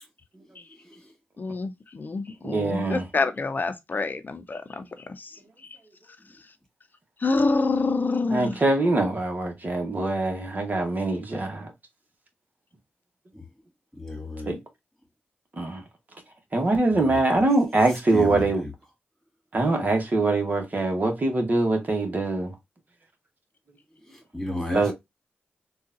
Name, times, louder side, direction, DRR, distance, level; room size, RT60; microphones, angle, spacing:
voice 1, 0.7-1.1 13.3-13.5 13.9-14.6 16.9-17.4 17.9-18.7 24.0-24.9, left 1 dB, 5° left, 2.3 m, -34 dB
voice 2, 1.4-4.8 5.2-5.3 7.2-8.6, left 3 dB, 50° left, 0.6 m, -27 dB
voice 3, 2.4-3.0 8.3-11.7 14.5-14.6 15.6-15.8 16.5-18.6 19.5-22.5 24.7-24.9, right 2 dB, 45° right, 1.2 m, -23 dB
3.7 x 2.4 x 2.5 m
cardioid pair, 50°, 4 cm